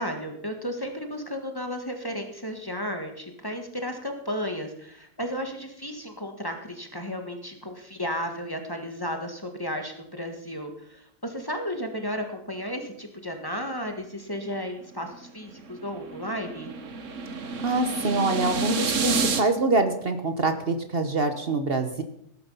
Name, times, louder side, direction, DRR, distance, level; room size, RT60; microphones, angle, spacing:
voice 1, 0.0-16.7, equal, 15° left, 4 dB, 1.6 m, -33 dB
sound 1, 15.1-19.4, right 4 dB, 70° right, 1.5 m, -29 dB
voice 2, 17.6-22.0, right 3 dB, 50° right, 8 dB, 1.3 m, -25 dB
18.0 x 10.5 x 5.6 m, 0.73 s
omnidirectional pair, 1.3 m